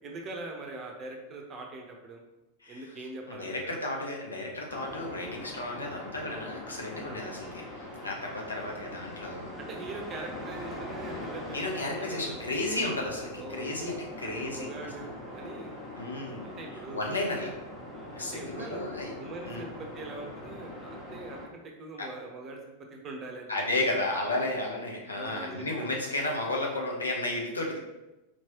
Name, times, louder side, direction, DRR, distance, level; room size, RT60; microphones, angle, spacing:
voice 1, 0.0-2.2 2.7-3.8 7.0-7.3 8.3-8.7 9.6-12.5 13.4-15.7 16.4-17.0 17.9-18.8 19.2-22.6 22.9-24.1 25.1-26.0, right 3 dB, 30° right, 2 dB, 0.7 m, -42 dB
voice 2, 3.3-7.6 8.0-9.6 11.5-14.7 16.0-16.5 16.9-17.5 18.1-19.1 19.4-19.6 22.0-22.1 23.5-27.8, left 2 dB, 75° left, -1 dB, 0.7 m, -33 dB
sound 1, 4.7-21.5, left 1 dB, 15° left, 1.3 m, -42 dB
4.4 x 3.1 x 2.8 m, 1.0 s
figure-of-eight pair, 90°, 0 cm